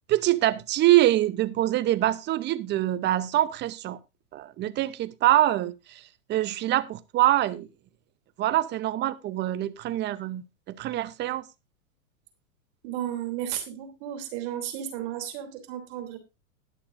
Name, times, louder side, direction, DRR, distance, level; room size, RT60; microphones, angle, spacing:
voice 1, 0.1-4.0 4.3-6.0 6.3-7.7 8.4-11.4, right 14 dB, 25° right, 0.7 m, -24 dB
voice 2, 12.8-16.2, right 11 dB, 50° right, 3.2 m, -33 dB
20.0 x 6.9 x 2.6 m
hypercardioid pair, 125°, 42 cm